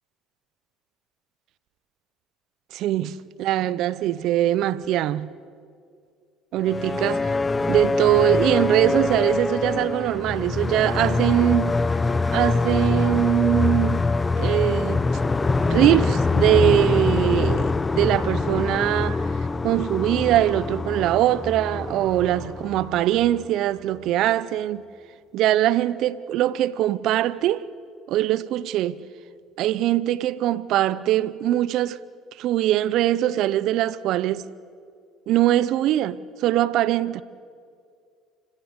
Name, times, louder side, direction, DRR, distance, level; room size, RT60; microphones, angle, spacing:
voice 1, 2.7-5.3 6.5-7.3 7.7-11.8 12.3-14.0 14.4-15.1 15.7-19.3 19.6-24.8 25.3-27.7 28.1-29.0 29.6-32.0 32.4-34.5 35.3-37.2, right 13 dB, 65° right, 0.7 m, -22 dB
sound 1, 6.6-23.5, left 3 dB, 25° left, 0.8 m, -24 dB
29.0 x 16.5 x 8.0 m
hypercardioid pair, 70°, 0 cm